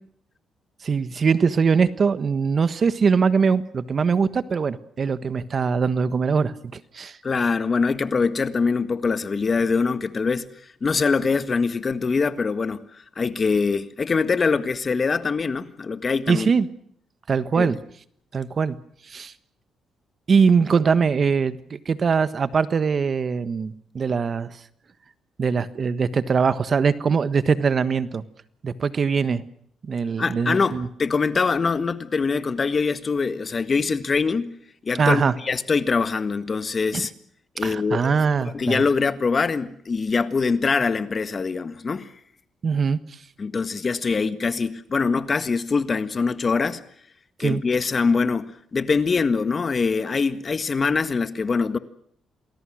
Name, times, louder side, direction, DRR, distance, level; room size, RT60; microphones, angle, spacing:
voice 1, 0.8-7.2 16.3-16.7 17.3-17.8 18.3-18.8 19.1-19.3 20.3-24.5 25.4-28.2 28.6-29.4 29.8-30.9 35.0-35.3 36.9-37.0 37.6-38.8 42.6-43.0 47.4-47.6, right 5 dB, 45° right, 1.4 m, -22 dB
voice 2, 7.2-10.5 10.8-16.5 17.5-17.7 30.2-34.5 34.8-37.1 37.6-38.2 38.5-42.1 43.4-46.8 47.4-51.8, left 4 dB, 40° left, 1.6 m, -23 dB
28.0 x 20.5 x 6.4 m
cardioid pair, 80°, 0 cm